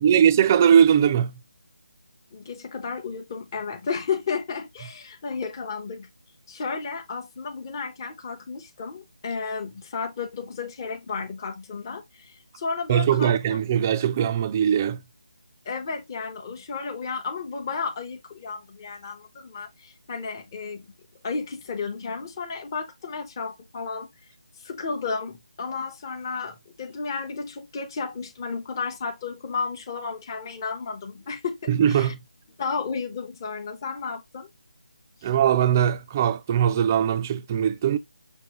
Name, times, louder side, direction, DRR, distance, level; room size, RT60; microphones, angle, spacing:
voice 1, 0.0-1.4 12.9-15.0 31.7-32.2 35.2-38.0, right 9 dB, 20° right, 0.3 m, -20 dB
voice 2, 2.3-6.1 6.5-13.6 15.7-20.9 21.2-24.1 24.5-32.1 32.6-34.5 35.2-35.3, left 5 dB, 30° left, 0.7 m, -33 dB
6.5 x 2.8 x 2.9 m
figure-of-eight pair, 160°, 4 cm